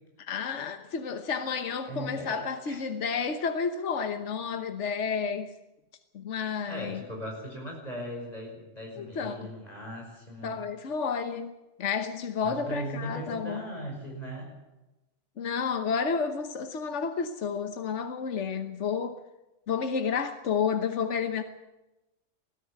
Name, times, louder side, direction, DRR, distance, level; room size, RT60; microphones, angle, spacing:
voice 1, 0.2-5.5 6.1-7.0 9.0-9.5 10.4-11.5 11.8-13.6 15.4-19.2 19.7-21.4, left 6 dB, 75° left, 8 dB, 1.4 m, -31 dB
voice 2, 1.9-2.8 6.7-10.6 12.4-14.5, equal, 35° left, 0 dB, 5.8 m, -38 dB
20.5 x 14.5 x 8.6 m, 1.0 s
omnidirectional pair, 1.2 m